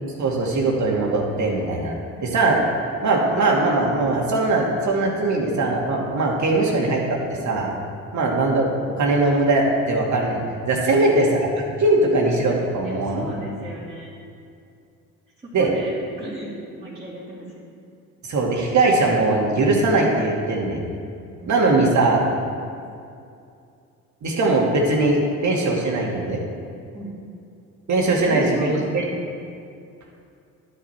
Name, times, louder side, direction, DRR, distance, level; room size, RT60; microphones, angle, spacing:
voice 1, 0.2-1.9 2.2-2.6 3.0-7.7 8.1-8.7 9.0-10.4 10.7-13.3 15.5-15.7 18.2-20.8 21.5-22.2 24.2-26.4 27.9-29.1, right 2 dB, 55° right, -1 dB, 2.3 m, -20 dB
voice 2, 10.9-11.5 12.8-14.1 15.4-17.5 21.4-21.9 26.9-27.2 28.2-29.2, right 1 dB, 15° right, -9 dB, 2.7 m, -36 dB
11.5 x 8.1 x 4.4 m, 2.4 s
supercardioid pair, 75°, 34 cm